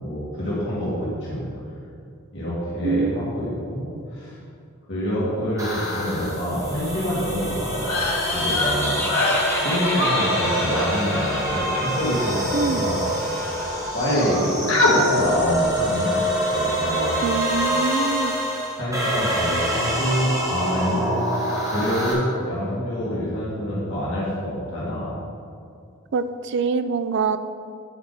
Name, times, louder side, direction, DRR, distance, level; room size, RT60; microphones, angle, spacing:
voice 1, 0.0-1.5 2.3-4.4 4.9-7.8 8.3-9.1 9.6-12.4 12.6-13.0 13.9-16.2 16.5-17.2 18.7-21.3 21.6-25.1, equal, 60° left, -8 dB, 2.1 m, -26 dB
voice 2, 2.8-3.2 12.5-12.9 17.2-18.3 26.1-27.4, right 5 dB, 55° right, 12 dB, 0.4 m, -24 dB
sound 1, 5.6-22.1, equal, 15° right, 1.4 m, -26 dB
sound 2, 7.8-13.4 13.7-14.4 14.7-14.9, left 2 dB, 85° left, 1.4 m, -26 dB
Laughter, 8.3-13.9, left 1 dB, 10° left, 0.8 m, -32 dB
9.1 x 5.9 x 4.1 m, 2.4 s
head